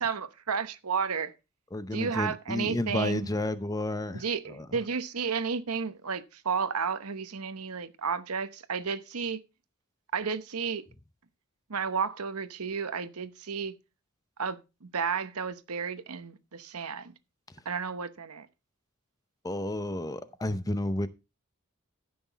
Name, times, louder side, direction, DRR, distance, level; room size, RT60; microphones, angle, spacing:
voice 1, 0.0-1.3 1.9-3.3 4.1-9.4 10.1-10.8 11.7-13.7 14.4-17.1 17.6-18.5, right 5 dB, 85° right, 1.0 m, -32 dB
voice 2, 1.7-4.2 19.4-21.1, left 1 dB, 15° left, 0.6 m, -31 dB
14.5 x 6.1 x 4.0 m
head